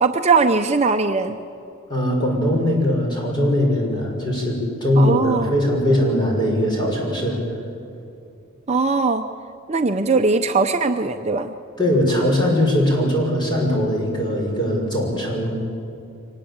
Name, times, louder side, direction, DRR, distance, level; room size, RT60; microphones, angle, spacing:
voice 1, 0.0-1.4 5.0-5.6 8.7-9.3 9.7-11.5, right 4 dB, 30° right, 6 dB, 0.7 m, -20 dB
voice 2, 1.9-7.4 11.8-15.6, equal, 20° left, -1 dB, 6.2 m, -20 dB
24.5 x 19.5 x 8.8 m, 2.7 s
head